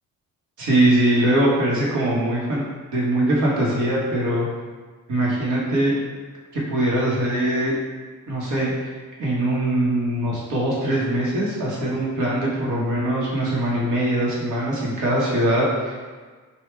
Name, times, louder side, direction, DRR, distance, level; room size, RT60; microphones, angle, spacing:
voice 1, 0.6-2.6 2.9-4.5 5.1-5.9 6.5-7.7 8.3-16.0, right 1 dB, 80° right, -5 dB, 1.4 m, -22 dB
3.4 x 2.7 x 4.5 m, 1.4 s
cardioid pair, 90°, 30 cm